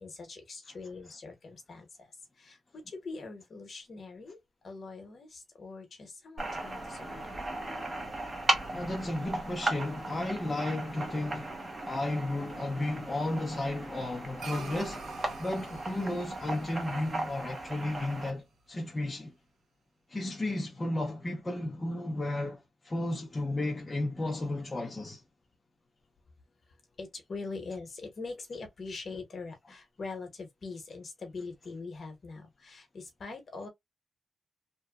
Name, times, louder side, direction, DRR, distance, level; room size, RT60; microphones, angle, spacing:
voice 1, 0.0-1.9 2.4-4.4 4.6-7.2 27.0-33.7, left 3 dB, 45° left, 0.9 m, -43 dB
sound 1, 6.4-18.3, right 2 dB, 25° right, 0.7 m, -36 dB
voice 2, 8.7-11.6 11.8-15.0 15.4-19.3 20.1-25.2, left 1 dB, 15° left, 0.5 m, -33 dB
sound 2, 14.4-19.0, right 4 dB, 70° right, 0.6 m, -48 dB
2.9 x 2.2 x 2.2 m
wide cardioid pair, 160°, 0 cm